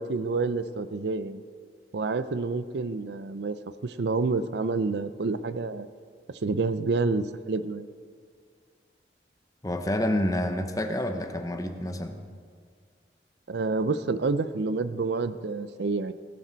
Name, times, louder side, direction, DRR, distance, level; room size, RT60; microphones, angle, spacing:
voice 1, 0.0-1.4 1.9-3.6 3.8-5.9 6.4-7.9 13.5-16.1, right 3 dB, 70° right, 13 dB, 0.5 m, -28 dB
voice 2, 9.6-12.2, left 1 dB, 20° left, 6 dB, 0.8 m, -28 dB
17.5 x 10.5 x 4.0 m, 2.1 s
head